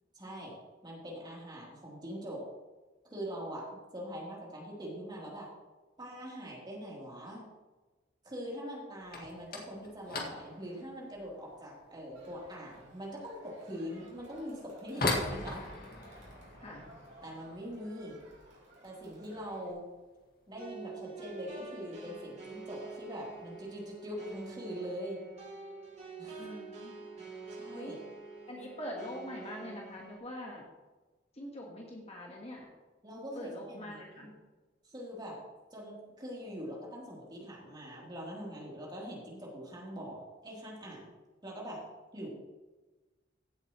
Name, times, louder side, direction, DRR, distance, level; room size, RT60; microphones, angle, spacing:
voice 1, 0.1-0.5 0.8-2.4 3.1-5.5 6.0-7.4 8.2-15.6 17.2-18.2 18.8-19.8 20.5-25.2 26.2-26.5 27.5-27.9 33.0-34.3 34.8-35.4 35.7-41.1 41.4-41.8 42.1-42.3, equal, 25° right, -4 dB, 3.3 m, -43 dB
sound 1, 9.0-19.8 20.0-20.6 20.9-21.2 21.5-21.6 22.3-22.4 23.3-23.6 23.9-24.4, left 2 dB, 50° left, 2.0 m, -41 dB
Crowd, 12.1-19.7, right 1 dB, 75° right, 4.1 m, -58 dB
sound 2, 20.6-30.2, right 4 dB, 40° right, 3.2 m, -47 dB
voice 2, 26.4-26.9 27.7-28.0 28.5-30.7 31.3-32.7 33.3-34.3, left 1 dB, 35° left, -1 dB, 1.5 m, -43 dB
15.5 x 8.1 x 3.1 m, 1.2 s
head